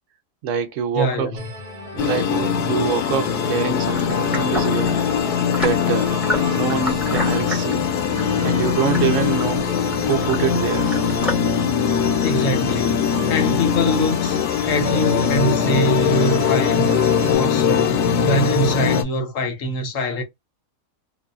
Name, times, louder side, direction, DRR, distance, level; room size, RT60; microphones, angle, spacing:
voice 1, 0.4-1.4 1.9-5.0 5.6-6.1 6.5-7.9 8.4-9.7 10.0-10.9, right 7 dB, 60° right, 0.9 m, -25 dB
voice 2, 0.9-1.4 12.2-14.4 14.6-16.9 17.3-20.2, equal, 60° left, 1.1 m, -24 dB
sound 1, 1.4-17.4, equal, 30° right, 1.0 m, -35 dB
sound 2, 2.0-19.0, left 7 dB, 90° left, 1.1 m, -21 dB
sound 3, 3.7-11.4, equal, ahead, 1.4 m, -32 dB
2.7 x 2.5 x 2.3 m
omnidirectional pair, 1.6 m